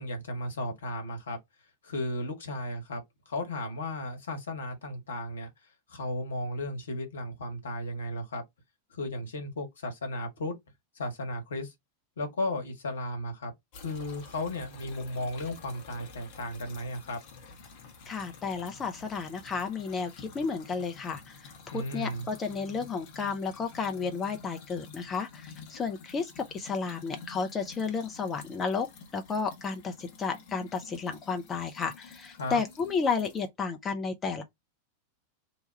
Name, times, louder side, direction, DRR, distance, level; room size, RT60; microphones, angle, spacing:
voice 1, 0.0-1.4 1.8-3.0 3.3-5.5 5.9-8.4 8.9-10.5 11.0-11.7 12.2-17.2 21.7-22.2 32.4-32.6, left 1 dB, 65° left, 1.0 m, -35 dB
sound 1, 13.7-33.5, left 4 dB, 45° left, 0.9 m, -50 dB
voice 2, 18.1-28.9 29.1-34.4, left 5 dB, 20° left, 0.5 m, -32 dB
2.9 x 2.2 x 3.1 m
figure-of-eight pair, 90°, 0 cm